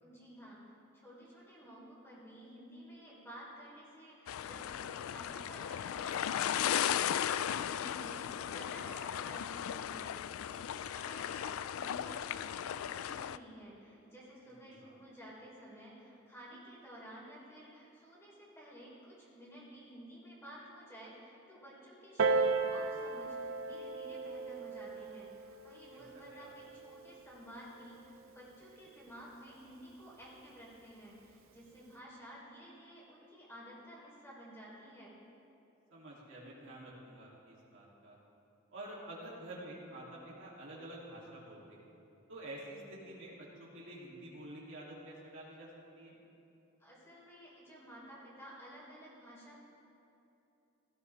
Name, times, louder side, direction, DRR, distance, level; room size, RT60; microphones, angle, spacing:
voice 1, 0.0-35.1 46.8-49.6, equal, 15° left, -6 dB, 3.9 m, -53 dB
sound 1, 4.3-13.4, left 9 dB, 90° left, 0.3 m, -36 dB
voice 2, 14.4-15.0 25.9-26.0 26.3-26.5 35.9-38.2 38.7-41.9 42.3-45.7 46.0-46.1, right 1 dB, 65° right, -6 dB, 3.0 m, -49 dB
Piano, 22.2-27.4 28.2-28.3, right 4 dB, 85° right, 0.7 m, -35 dB
17.0 x 14.5 x 3.5 m, 2.8 s
head